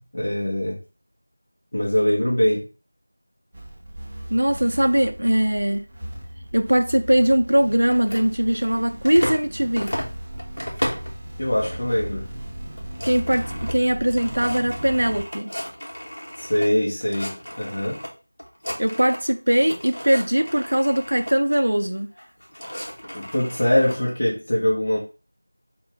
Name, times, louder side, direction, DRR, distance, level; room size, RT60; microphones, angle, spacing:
voice 1, 0.1-0.8 1.7-2.7 11.4-12.3 16.4-18.0 23.1-25.0, left 1 dB, 40° left, 1.5 m, -22 dB
sound 1, 3.5-15.2, right 1 dB, 10° right, 0.5 m, -37 dB
voice 2, 4.3-5.8 6.5-9.9 13.0-15.5 18.8-22.1, right 1 dB, 75° right, 0.6 m, -21 dB
sound 2, 7.8-9.5 9.8-11.2 11.6-12.0 12.4-12.5 12.7-16.7 17.0-18.1 18.4-19.3 19.6-21.4 22.2-24.0, equal, 60° left, 1.4 m, -34 dB
5.2 x 2.5 x 3.6 m
figure-of-eight pair, 175°, 0 cm